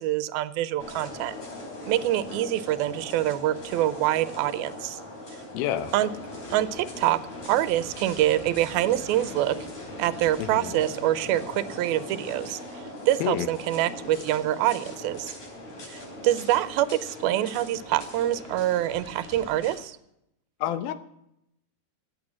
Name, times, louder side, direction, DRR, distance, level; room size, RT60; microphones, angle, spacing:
voice 1, 0.0-1.4 1.9-5.0 5.3-5.4 5.9-6.1 6.5-7.2 7.5-9.6 10.0-15.3 15.9-20.0, right 13 dB, 80° right, 16 dB, 2.6 m, -25 dB
sound 1, 0.8-19.7, left 1 dB, 45° left, 5.1 m, -40 dB
voice 2, 5.5-5.9 10.4-10.8 13.2-13.5 20.6-20.9, left 11 dB, 80° left, 13 dB, 2.8 m, -28 dB
15.0 x 9.0 x 7.4 m, 0.79 s
omnidirectional pair, 4.3 m